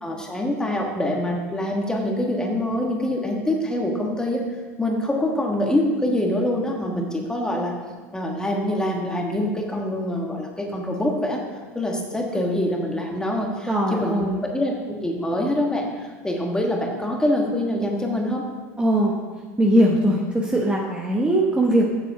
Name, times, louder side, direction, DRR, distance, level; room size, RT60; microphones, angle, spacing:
voice 1, 0.0-4.4 4.8-7.7 8.1-11.4 11.7-18.4, left 1 dB, 10° left, 0 dB, 1.5 m, -25 dB
voice 2, 13.7-14.4 18.8-19.1 19.6-21.9, right 1 dB, 10° right, -1 dB, 1.0 m, -20 dB
7.5 x 6.8 x 5.0 m, 1.5 s
supercardioid pair, 110°, 9 cm